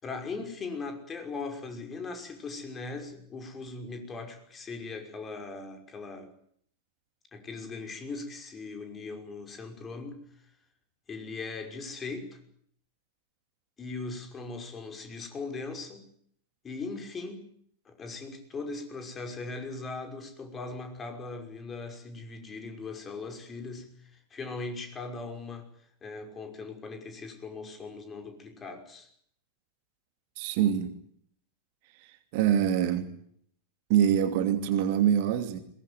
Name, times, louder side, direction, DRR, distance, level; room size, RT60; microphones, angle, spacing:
voice 1, 0.0-6.3 7.3-10.2 11.1-12.4 13.8-16.0 16.6-17.5 17.9-25.7 26.0-29.1, left 3 dB, 20° left, 5 dB, 5.7 m, -39 dB
voice 2, 30.4-30.9 32.0-33.1 33.9-35.6, right 9 dB, 45° right, 9 dB, 2.6 m, -25 dB
22.0 x 20.0 x 9.4 m, 0.65 s
figure-of-eight pair, 90°, 0 cm